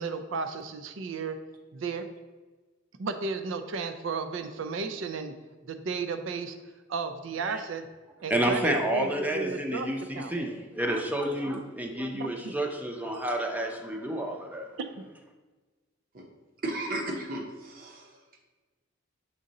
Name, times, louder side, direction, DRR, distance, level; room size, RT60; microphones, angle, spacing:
voice 1, 0.0-1.4 1.7-2.1 3.0-5.3 5.6-6.6 6.9-7.8 8.2-9.9 10.1-10.3 11.6-11.7 12.1-12.5 14.8-15.1, right 4 dB, 75° right, 9 dB, 0.5 m, -34 dB
voice 2, 8.3-14.7, right 1 dB, 10° right, 2 dB, 0.6 m, -30 dB
voice 3, 16.6-18.1, right 1 dB, 50° right, 1 dB, 1.0 m, -34 dB
6.4 x 3.7 x 4.1 m, 1.3 s
head